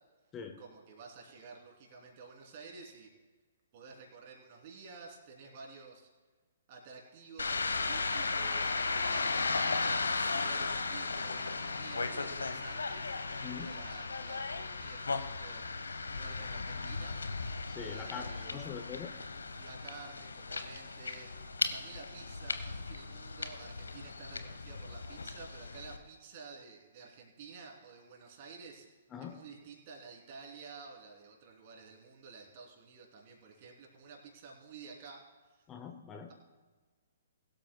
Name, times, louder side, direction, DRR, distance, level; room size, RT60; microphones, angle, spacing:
voice 1, 0.6-3.1 3.7-6.1 6.7-9.5 10.3-15.7 16.1-17.2 17.8-18.6 19.6-21.3 21.7-28.9 29.2-35.2, right 4 dB, 40° right, -1 dB, 3.2 m, -51 dB
sound 1, 7.4-26.0, left 4 dB, 70° left, 1.0 m, -36 dB
voice 2, 17.7-19.2 29.1-29.4 35.7-36.3, left 6 dB, 15° left, 5 dB, 0.8 m, -43 dB
21.5 x 12.5 x 2.3 m, 1.4 s
figure-of-eight pair, 120°, 0 cm